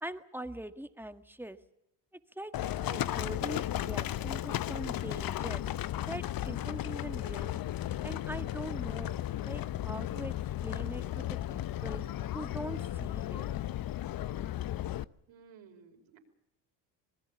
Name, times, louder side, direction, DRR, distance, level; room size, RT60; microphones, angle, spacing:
voice 1, 0.0-1.6 2.3-5.6 6.1-7.6 8.0-10.3 10.6-12.0 12.3-13.5, right 1 dB, 5° right, 9 dB, 1.7 m, -42 dB
Livestock farm animals working animals, 2.5-15.0, left 13 dB, 45° left, 0.8 m, -35 dB
voice 2, 15.3-16.2, right 6 dB, 65° right, 4 dB, 5.1 m, -56 dB
26.0 x 20.5 x 7.2 m, 0.82 s
hypercardioid pair, 65°, 49 cm